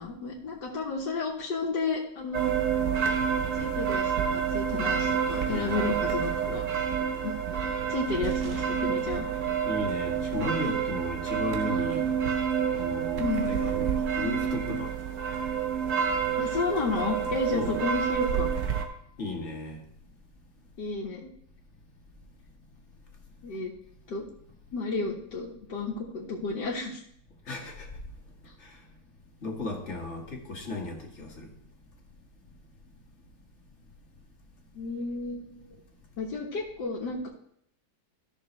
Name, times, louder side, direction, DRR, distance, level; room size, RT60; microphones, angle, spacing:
voice 1, 0.0-2.5 3.5-6.6 7.2-7.6 7.9-9.3 13.2-13.5 16.4-18.5 20.8-21.3 23.4-23.7 24.1-24.2 24.7-27.0 34.7-35.6 36.2-37.3, left 3 dB, 85° left, -6 dB, 2.0 m, -32 dB
sound 1, 2.3-18.9, right 7 dB, 55° right, 1.3 m, -28 dB
voice 2, 5.5-5.9 9.7-12.1 12.7-15.0 17.5-17.8 19.2-19.8 27.5-27.9 28.6-28.8 29.4-31.5, left 2 dB, 45° left, 0 dB, 1.9 m, -35 dB
13.5 x 6.4 x 3.2 m, 0.70 s
omnidirectional pair, 1.8 m